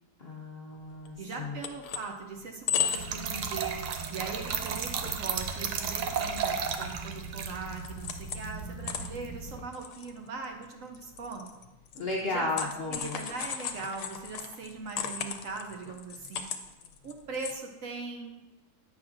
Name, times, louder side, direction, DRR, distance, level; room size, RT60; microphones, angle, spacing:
voice 1, 0.2-1.6 12.0-13.3, left 3 dB, 55° left, -2 dB, 0.7 m, -34 dB
sound 1, 1.0-1.1 1.3-2.1 2.5-3.2 3.6-3.7 4.2-4.3 4.6-5.2 5.4-5.5 6.1-7.2 7.5-8.5 8.8-17.5, left 8 dB, 80° left, 1.1 m, -36 dB
voice 2, 1.2-3.8 4.1-11.5 12.3-16.4 17.0-18.5, right 4 dB, 65° right, 3 dB, 0.9 m, -40 dB
Trickle dribble / Fill (with liquid), 2.9-9.6, right 6 dB, 85° right, 1.2 m, -34 dB
8.4 x 6.0 x 2.5 m, 1.0 s
omnidirectional pair, 1.7 m